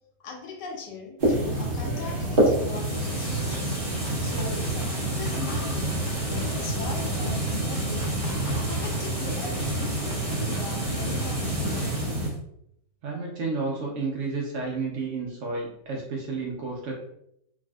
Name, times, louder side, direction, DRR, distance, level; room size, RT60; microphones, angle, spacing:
voice 1, 0.2-3.8 4.2-8.2 8.6-11.8, left 4 dB, 80° left, 1 dB, 1.3 m, -40 dB
sound 1, 1.2-12.3, right 1 dB, 40° right, 0.8 m, -28 dB
sound 2, 2.4-12.3, right 1 dB, 5° left, 0.8 m, -37 dB
voice 2, 13.0-16.9, right 3 dB, 85° right, -1 dB, 0.6 m, -31 dB
3.3 x 2.4 x 2.3 m, 0.74 s
omnidirectional pair, 1.9 m